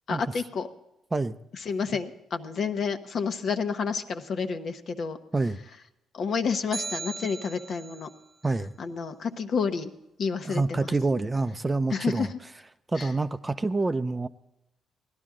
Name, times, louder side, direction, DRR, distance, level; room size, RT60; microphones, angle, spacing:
voice 1, 0.1-0.7 1.6-5.2 6.1-8.1 8.8-9.9 10.2-10.9 11.9-12.3 13.0-13.1, left 5 dB, 60° left, 7 dB, 1.1 m, -30 dB
sound 1, 6.7-8.1, right 4 dB, 45° right, 0.8 m, -37 dB
voice 2, 10.4-12.3 12.9-14.3, right 3 dB, 20° right, 11 dB, 0.5 m, -27 dB
17.5 x 11.5 x 3.7 m, 0.87 s
cardioid pair, 90°, 0 cm